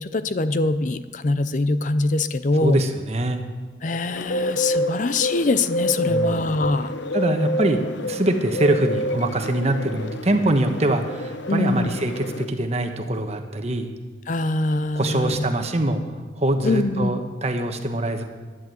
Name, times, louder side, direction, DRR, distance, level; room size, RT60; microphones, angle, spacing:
voice 1, 0.0-2.8 3.8-6.9 11.5-11.9 14.3-15.4 16.6-17.1, left 2 dB, 45° left, 12 dB, 0.5 m, -23 dB
voice 2, 2.6-3.4 6.0-6.4 7.1-13.9 14.9-16.0 16.4-18.2, right 1 dB, 35° right, 5 dB, 1.3 m, -23 dB
Bird, 4.2-12.4, left 1 dB, 90° left, 0.8 m, -28 dB
12.0 x 10.5 x 7.8 m, 1.4 s
head